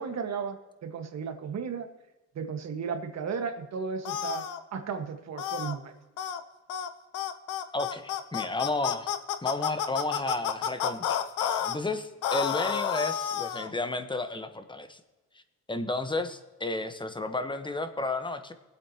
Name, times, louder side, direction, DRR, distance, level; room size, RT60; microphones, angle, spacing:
voice 1, 0.0-1.9 2.3-5.9, right 6 dB, 60° right, 5 dB, 1.6 m, -35 dB
sound 1, 4.0-4.6 5.4-5.7 6.2-6.4 6.7-6.9 7.1-11.8 12.2-13.7, left 9 dB, 90° left, 0.8 m, -30 dB
voice 2, 7.7-9.1 9.4-15.0 15.7-18.5, left 2 dB, 15° left, 8 dB, 1.1 m, -32 dB
21.0 x 8.4 x 2.9 m, 1.2 s
cardioid pair, 90°, 30 cm